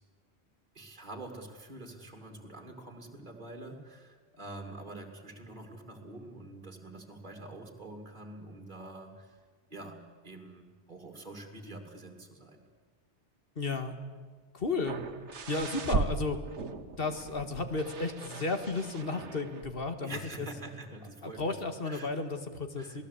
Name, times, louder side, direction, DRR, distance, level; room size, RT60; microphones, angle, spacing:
voice 1, 0.7-9.4 9.7-10.0 10.2-12.7 20.0-21.6 21.8-22.1 22.8-23.0, right 2 dB, 45° right, 4 dB, 2.9 m, -46 dB
voice 2, 13.6-14.0 14.5-15.0 15.5-16.4 17.0-20.5 21.2-23.0, left 3 dB, 55° left, 8 dB, 2.0 m, -33 dB
sound 1, 14.9-19.8 20.2-20.3, right 4 dB, 80° right, 1.6 m, -37 dB
27.0 x 18.0 x 8.5 m, 1.5 s
omnidirectional pair, 1.2 m